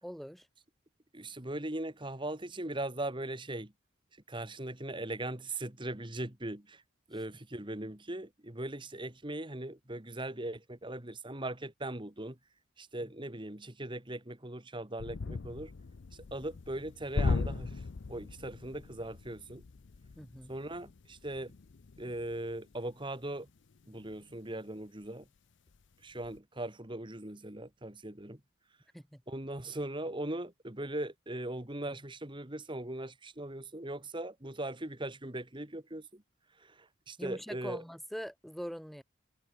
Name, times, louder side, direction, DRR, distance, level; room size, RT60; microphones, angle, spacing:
voice 1, 0.0-0.5 13.0-13.1 20.2-20.5 28.9-29.2 37.2-39.0, equal, ahead, 1.9 m, -43 dB
voice 2, 1.1-3.7 4.3-6.8 7.1-12.4 12.8-15.7 16.3-17.8 18.1-19.6 20.5-21.5 22.0-23.5 23.9-25.3 26.0-28.4 29.3-36.2 36.6-37.8, right 1 dB, 25° right, 2.0 m, -39 dB
sound 1, 15.0-24.7 25.0-25.2 25.7-26.4, left 4 dB, 60° left, 0.5 m, -39 dB
head